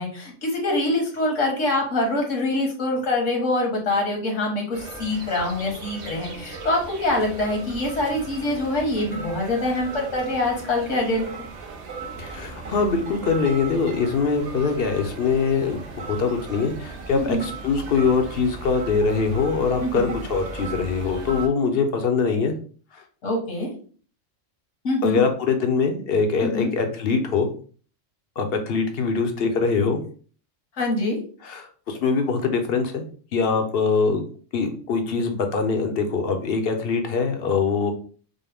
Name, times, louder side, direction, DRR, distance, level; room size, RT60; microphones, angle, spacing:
voice 1, 0.0-11.3 17.1-17.4 19.8-20.1 23.2-23.7 24.8-25.2 26.4-26.7 30.8-31.2, left 2 dB, 75° left, 0 dB, 1.6 m, -24 dB
sound 1, 4.7-21.5, right 4 dB, 70° right, 1.1 m, -37 dB
voice 2, 12.2-22.5 22.9-23.0 25.0-27.5 28.4-30.0 31.4-33.0 33.3-34.2 34.5-37.9, left 5 dB, 55° left, 5 dB, 0.8 m, -23 dB
5.2 x 2.1 x 3.4 m, 0.42 s
omnidirectional pair, 1.3 m